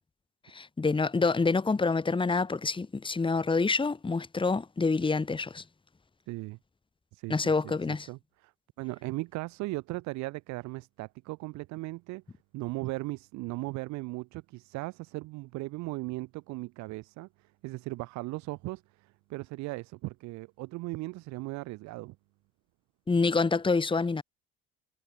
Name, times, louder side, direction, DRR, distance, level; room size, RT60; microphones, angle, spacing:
voice 1, 0.5-5.6 7.3-8.1 23.1-24.2, left 4 dB, 15° left, 1.6 m, -27 dB
voice 2, 6.3-6.6 7.1-7.7 8.1-8.5 8.8-12.2 12.5-22.2, right 21 dB, 65° right, 5.8 m, -37 dB
hypercardioid pair, 60°, 30 cm